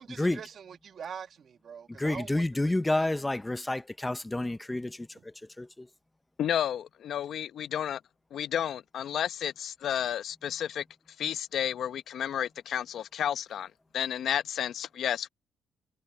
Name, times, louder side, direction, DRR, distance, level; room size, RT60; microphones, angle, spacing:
voice 1, 0.0-3.1, right 7 dB, 55° right, 1.7 m, -44 dB
voice 2, 2.0-5.9, left 2 dB, 10° left, 0.7 m, -30 dB
voice 3, 6.4-8.0 8.3-10.8 11.2-15.3, left 10 dB, 70° left, 0.9 m, -31 dB
cardioid pair, 90°, 0 cm